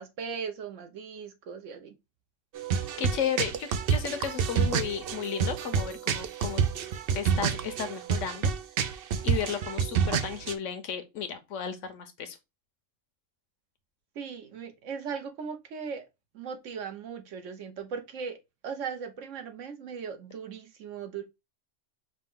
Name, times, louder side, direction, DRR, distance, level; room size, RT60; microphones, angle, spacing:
voice 1, 0.0-2.0 14.1-16.1 16.3-18.4 18.6-21.2, right 6 dB, 90° right, 1.2 m, -38 dB
sound 1, 2.5-10.5, right 7 dB, 60° right, 0.7 m, -28 dB
voice 2, 2.7-6.6 7.1-8.5 8.9-12.4, left 8 dB, 85° left, 1.0 m, -34 dB
5.0 x 2.3 x 3.5 m
omnidirectional pair, 1.3 m